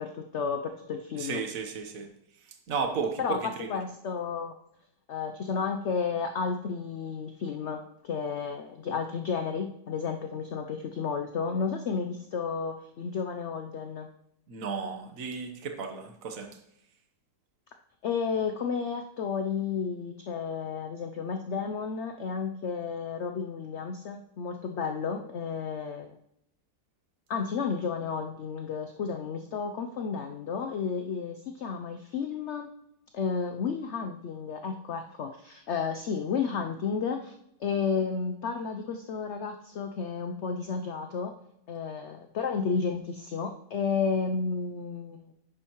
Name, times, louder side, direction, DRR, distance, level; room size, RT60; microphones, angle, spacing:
voice 1, 0.0-1.4 3.2-4.5 5.1-7.8 8.0-14.1 18.0-26.1 27.3-32.7 33.1-41.3 41.7-45.3, left 5 dB, 60° left, 5 dB, 0.8 m, -32 dB
voice 2, 1.2-2.1 2.7-3.8 14.5-16.5, right 5 dB, 60° right, 5 dB, 1.5 m, -34 dB
10.5 x 9.9 x 3.0 m, 0.79 s
omnidirectional pair, 1.7 m